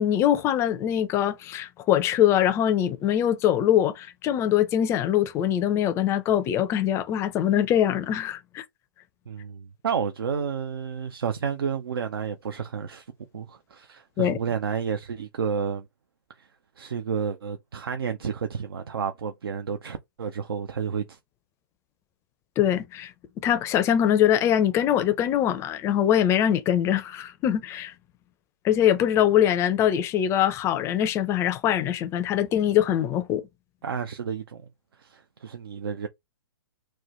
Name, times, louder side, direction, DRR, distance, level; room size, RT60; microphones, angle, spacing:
voice 1, 0.0-8.6 14.2-14.4 22.6-23.1 23.4-27.9 28.6-33.4, left 10 dB, 20° left, 0.4 m, -23 dB
voice 2, 9.3-13.1 13.3-15.9 16.4-16.5 16.8-21.2 33.8-34.6 35.0-36.1, right 7 dB, 75° right, 0.5 m, -31 dB
3.1 x 2.1 x 3.7 m
hypercardioid pair, 125°, 12 cm